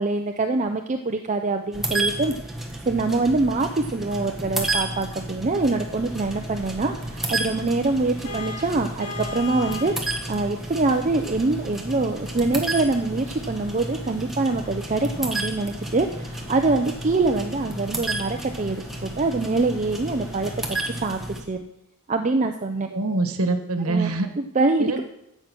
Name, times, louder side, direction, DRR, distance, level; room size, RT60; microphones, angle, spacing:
voice 1, 0.0-2.3 2.9-21.2 21.5-21.6 22.1-22.9 23.9-24.1 24.4-25.0, right 3 dB, 35° right, 6 dB, 0.6 m, -24 dB
sound 1, 1.7-21.4, right 1 dB, ahead, 1.4 m, -32 dB
sound 2, 5.9-21.0, left 1 dB, 60° left, 4.5 m, -46 dB
Vehicle horn car horn honking, 8.2-10.0, left 4 dB, 40° left, 2.5 m, -35 dB
voice 2, 22.9-24.3 24.8-25.0, right 2 dB, 75° right, 7 dB, 1.3 m, -24 dB
12.5 x 7.9 x 6.1 m, 0.83 s
head